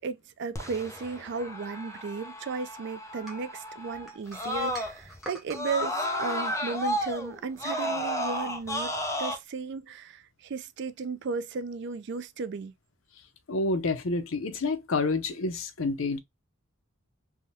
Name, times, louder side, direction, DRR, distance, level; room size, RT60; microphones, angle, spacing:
voice 1, 0.0-5.9 6.2-8.9 9.2-12.7, right 4 dB, 60° right, 0.4 m, -35 dB
Screaming, 0.6-5.2 5.5-9.4, left 1 dB, 15° left, 0.6 m, -33 dB
sound 1, 3.3-5.7, right 1 dB, ahead, 1.0 m, -44 dB
voice 2, 13.5-16.2, left 3 dB, 75° left, 0.7 m, -28 dB
3.5 x 2.2 x 2.6 m
head